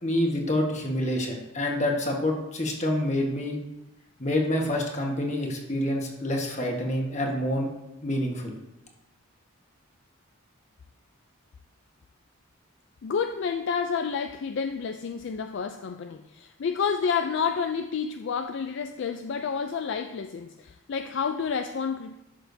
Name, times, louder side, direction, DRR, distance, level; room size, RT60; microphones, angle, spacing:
voice 1, 0.0-3.6 4.2-7.7 8.0-8.6, left 1 dB, 35° left, 1 dB, 1.3 m, -27 dB
voice 2, 13.0-22.1, left 6 dB, 55° left, 7 dB, 0.3 m, -29 dB
11.5 x 6.7 x 2.7 m, 0.92 s
head